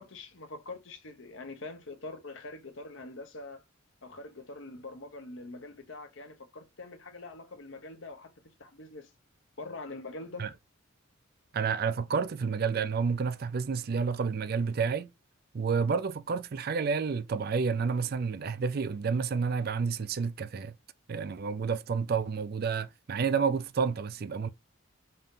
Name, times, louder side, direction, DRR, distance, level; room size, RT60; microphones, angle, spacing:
voice 1, 0.0-3.6 4.0-8.3 8.6-9.1 9.6-10.5, left 2 dB, 60° left, 1.0 m, -44 dB
voice 2, 11.5-15.1 15.5-20.8 21.1-24.5, right 5 dB, 45° right, 0.4 m, -30 dB
5.3 x 2.7 x 3.7 m
head